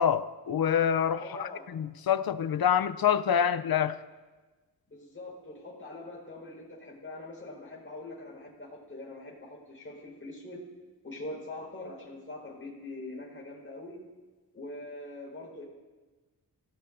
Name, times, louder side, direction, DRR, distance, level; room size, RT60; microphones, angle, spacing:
voice 1, 0.0-4.0, left 8 dB, 65° left, 0.7 m, -26 dB
voice 2, 1.2-1.7 4.9-10.6 11.0-14.0 14.5-15.6, left 2 dB, 30° left, 4.9 m, -43 dB
26.0 x 16.5 x 2.7 m
wide cardioid pair, 125°, 40 cm